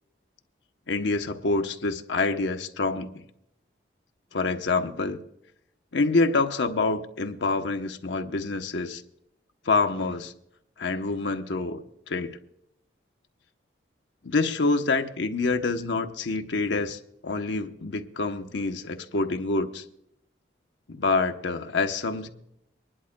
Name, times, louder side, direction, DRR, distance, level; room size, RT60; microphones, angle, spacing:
voice 1, 0.9-3.1 4.3-5.2 5.9-9.0 9.6-10.3 10.8-12.4 14.2-19.8 20.9-22.3, left 3 dB, 75° left, 6 dB, 0.9 m, -27 dB
24.0 x 11.0 x 2.2 m, 0.78 s
head